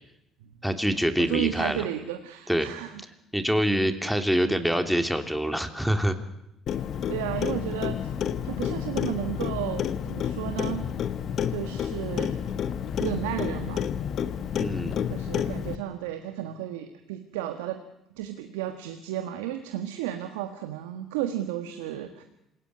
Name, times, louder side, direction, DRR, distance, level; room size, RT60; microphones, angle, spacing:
voice 1, 0.6-1.9 2.5-2.7 3.3-6.2 14.5-15.0, equal, ahead, 7 dB, 2.9 m, -25 dB
voice 2, 1.2-3.0 7.1-10.9 11.5-12.4 13.0-13.9 15.1-17.8 18.1-22.2, right 12 dB, 80° right, 7 dB, 1.6 m, -33 dB
Clock, 6.7-15.8, left 8 dB, 60° left, 1.5 m, -30 dB
27.0 x 17.5 x 9.7 m, 0.84 s
hypercardioid pair, 60°, 0 cm